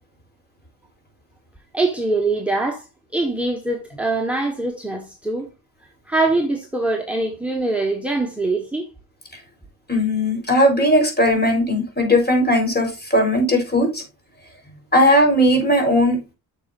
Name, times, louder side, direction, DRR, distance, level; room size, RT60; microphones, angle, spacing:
voice 1, 1.7-2.8 3.1-5.5 6.1-8.9, right 2 dB, 5° right, 1.5 m, -23 dB
voice 2, 9.9-14.0 14.9-16.2, equal, 25° left, 4.3 m, -17 dB
9.8 x 6.7 x 2.6 m
cardioid pair, 95°, 39 cm